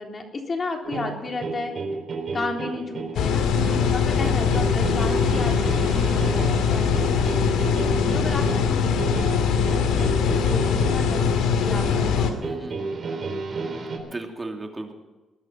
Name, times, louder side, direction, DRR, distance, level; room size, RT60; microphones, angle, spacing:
voice 1, 0.0-1.7 2.3-3.4 3.9-13.2, left 3 dB, 35° left, 2 dB, 3.5 m, -34 dB
sound 1, 0.8-14.0, right 4 dB, 45° right, 4.0 m, -32 dB
sound 2, 3.1-12.3, left 6 dB, 90° left, 2.1 m, -22 dB
voice 2, 3.5-4.6 12.4-12.9 13.7-14.9, right 2 dB, 20° right, 3 dB, 2.8 m, -37 dB
20.0 x 11.5 x 5.9 m, 1.1 s
cardioid pair, 90°, 0 cm